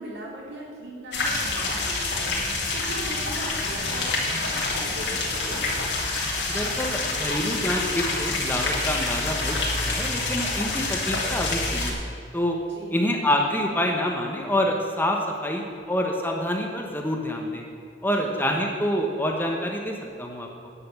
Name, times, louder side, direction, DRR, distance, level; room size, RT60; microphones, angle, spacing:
voice 1, 0.0-2.3 2.7-5.7 12.7-13.0 18.2-18.7, right 1 dB, 70° right, -3 dB, 3.4 m, -39 dB
sound 1, 1.1-11.9, left 3 dB, 75° left, 2.4 m, -27 dB
voice 2, 6.5-9.6 9.8-12.6 12.9-17.6 18.0-20.7, equal, 10° left, 1 dB, 1.1 m, -27 dB
10.0 x 6.8 x 8.2 m, 2.4 s
head